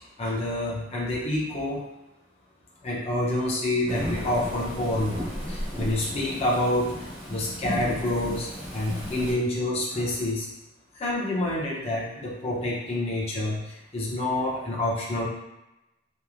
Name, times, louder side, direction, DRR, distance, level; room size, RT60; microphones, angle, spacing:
voice 1, 0.2-1.8 2.8-5.2 5.5-10.5 11.0-15.3, left 1 dB, 30° left, -5 dB, 0.6 m, -28 dB
Thunderstorm / Rain, 3.9-9.3, equal, 10° right, 0.7 m, -34 dB
2.9 x 2.1 x 2.4 m, 0.96 s
head